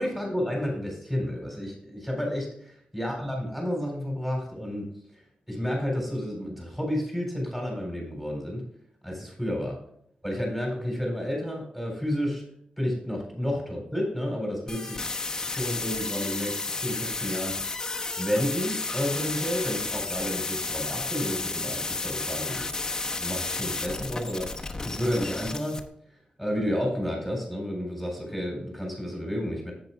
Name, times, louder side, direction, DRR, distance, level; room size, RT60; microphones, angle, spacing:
voice 1, 0.0-2.5 2.9-4.9 5.5-8.6 9.0-9.8 10.2-12.4 12.8-15.1 15.4-17.6 18.2-22.7 23.2-25.8 26.4-29.7, equal, 5° right, 0 dB, 3.8 m, -31 dB
sound 1, 14.7-25.8, left 3 dB, 20° left, 1.0 m, -32 dB
10.5 x 8.5 x 2.3 m, 0.70 s
wide cardioid pair, 125°, 3 cm